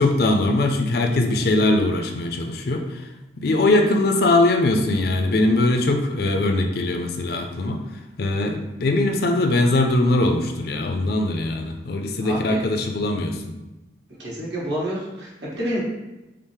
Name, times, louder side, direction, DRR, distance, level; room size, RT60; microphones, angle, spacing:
voice 1, 0.0-3.1 3.4-7.8 8.2-13.4, left 2 dB, 55° left, 4 dB, 0.4 m, -21 dB
voice 2, 12.2-12.6 14.2-15.8, equal, 70° right, -6 dB, 1.4 m, -28 dB
5.3 x 2.0 x 3.2 m, 1.0 s
head